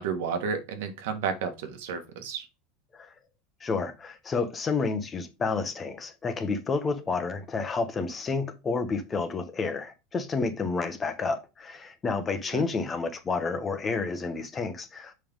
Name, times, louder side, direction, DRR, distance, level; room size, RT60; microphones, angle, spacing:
voice 1, 0.0-2.5 12.5-12.6, right 6 dB, 90° right, 1.7 m, -32 dB
voice 2, 3.6-15.1, left 4 dB, 20° left, 1.1 m, -30 dB
6.6 x 5.4 x 3.7 m
supercardioid pair, 160°, 0 cm